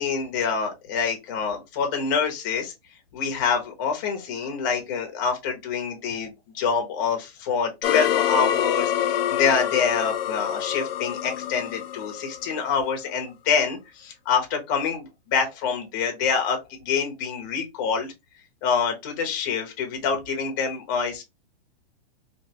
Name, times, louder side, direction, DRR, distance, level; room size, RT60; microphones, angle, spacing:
voice 1, 0.0-2.7 3.1-18.1 18.6-21.2, left 6 dB, 20° left, 0.6 m, -26 dB
sound 1, 7.8-12.8, left 10 dB, 65° left, 0.5 m, -26 dB
3.3 x 2.7 x 2.7 m
hypercardioid pair, 170°, 31 cm